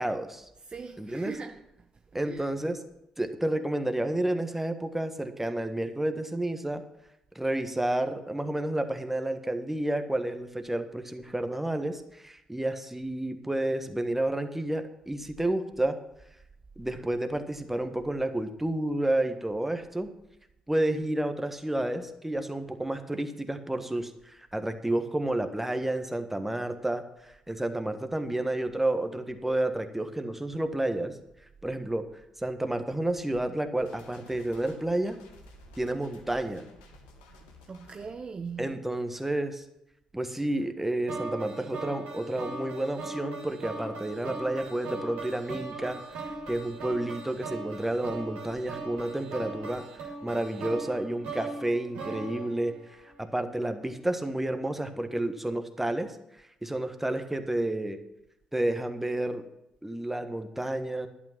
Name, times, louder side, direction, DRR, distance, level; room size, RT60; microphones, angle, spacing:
voice 1, 0.0-0.5 1.0-1.4 2.1-2.8 3.2-6.8 7.3-16.0 16.8-20.1 20.7-31.2 31.6-32.1 32.4-35.2 35.8-36.6 38.6-39.6 40.1-49.8 50.2-52.7 53.2-56.2 56.6-58.0 58.5-59.5 59.8-61.1, right 1 dB, 10° right, 1.5 m, -30 dB
voice 2, 0.6-1.9 2.1-2.5 37.7-38.7, right 5 dB, 35° right, 0.7 m, -40 dB
sound 1, 33.8-38.1, left 5 dB, 70° left, 1.6 m, -55 dB
sound 2, 41.1-53.3, right 3 dB, 65° right, 2.6 m, -39 dB
11.5 x 8.5 x 6.0 m
figure-of-eight pair, 40°, 3 cm